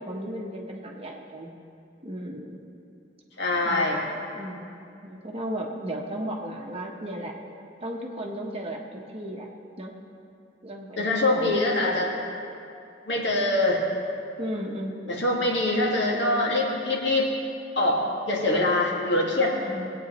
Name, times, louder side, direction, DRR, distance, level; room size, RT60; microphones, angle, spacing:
voice 1, 0.0-1.5 2.0-2.6 3.6-7.3 7.8-9.5 9.8-9.9 10.6-11.6 14.4-15.6 19.6-19.9, equal, 35° right, 0 dB, 1.2 m, -35 dB
voice 2, 3.4-4.0 11.0-12.1 13.1-13.8 15.1-17.3 17.8-18.0 18.3-19.5, left 2 dB, 80° left, -2 dB, 1.9 m, -24 dB
19.5 x 8.8 x 3.1 m, 2.5 s
head